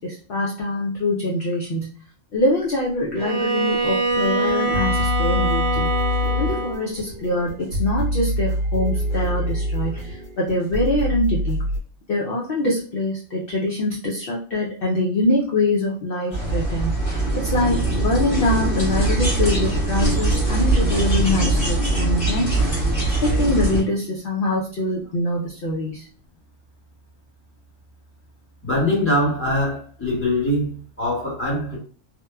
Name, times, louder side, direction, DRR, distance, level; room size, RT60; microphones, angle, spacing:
voice 1, 0.0-1.9 2.3-5.9 6.4-11.6 12.1-22.5 23.2-26.0, left 1 dB, 60° left, -2 dB, 0.6 m, -24 dB
Bowed string instrument, 3.2-6.9, right 3 dB, 90° right, 1.0 m, -23 dB
sound 1, 4.1-11.8, left 2 dB, 60° right, 0.8 m, -25 dB
sound 2, 16.3-23.8, right 2 dB, 45° left, 1.3 m, -21 dB
voice 2, 28.6-31.8, left 1 dB, 10° left, -5 dB, 0.9 m, -22 dB
2.9 x 2.1 x 2.2 m, 0.42 s
omnidirectional pair, 1.3 m